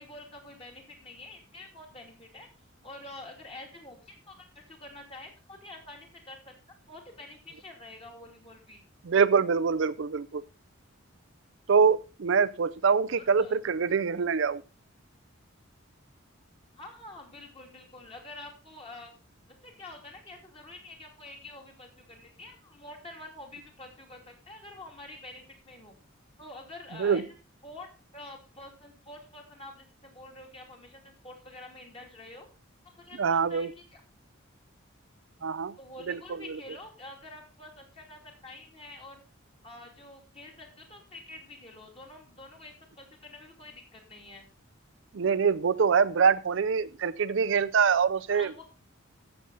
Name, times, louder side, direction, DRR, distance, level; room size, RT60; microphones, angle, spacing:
voice 1, 0.0-2.5 2.8-6.5 6.9-8.8 13.2-13.5 16.7-19.1 19.6-25.9 26.4-27.2 27.6-27.9 28.1-32.5 32.8-34.0 35.8-39.2 39.6-44.5 48.3-48.7, left 2 dB, 25° left, 1 dB, 2.6 m, -47 dB
voice 2, 9.1-10.4 11.7-14.6 27.0-27.2 33.2-33.7 35.4-35.7 36.1-36.2 45.1-48.5, right 6 dB, 60° right, 15 dB, 0.4 m, -24 dB
14.0 x 6.9 x 4.0 m, 0.32 s
head